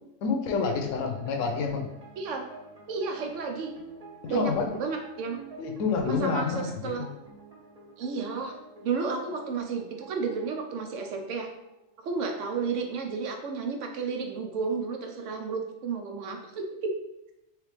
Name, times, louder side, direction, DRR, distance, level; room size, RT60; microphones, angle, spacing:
voice 1, 0.2-1.9 4.2-4.7 5.6-7.1, left 5 dB, 85° left, 4 dB, 1.0 m, -28 dB
sound 1, 0.6-12.3, right 3 dB, 40° right, 0.7 m, -49 dB
voice 2, 2.9-3.7 4.3-5.4 6.0-7.0 8.0-8.5 8.8-11.5 12.0-16.9, right 4 dB, 75° right, 3 dB, 1.0 m, -32 dB
3.2 x 3.2 x 3.3 m, 0.88 s
omnidirectional pair, 1.3 m